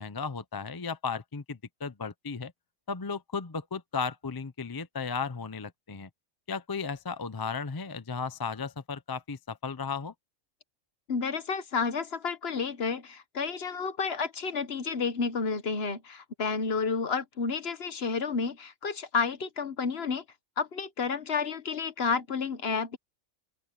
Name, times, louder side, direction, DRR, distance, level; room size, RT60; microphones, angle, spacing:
voice 1, 0.0-2.5 2.9-6.1 6.5-10.1, left 5 dB, 25° left, 0.5 m, -35 dB
voice 2, 11.1-20.2 20.6-23.0, left 5 dB, 50° left, 1.3 m, -31 dB
open air
omnidirectional pair, 1.4 m